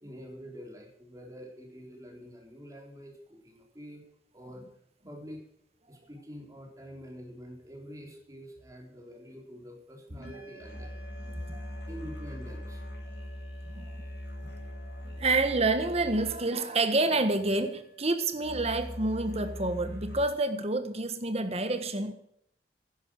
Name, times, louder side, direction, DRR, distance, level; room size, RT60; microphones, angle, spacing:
voice 1, 0.0-4.0 4.3-4.6 5.0-5.4 5.9-11.0 11.9-12.8, equal, 20° right, 0 dB, 3.9 m, -46 dB
sound 1, 8.6-8.7 10.2-20.2, left 1 dB, 70° left, 6.2 m, -42 dB
voice 2, 15.2-22.1, right 2 dB, 35° right, 8 dB, 1.5 m, -28 dB
11.5 x 10.5 x 7.8 m, 0.71 s
head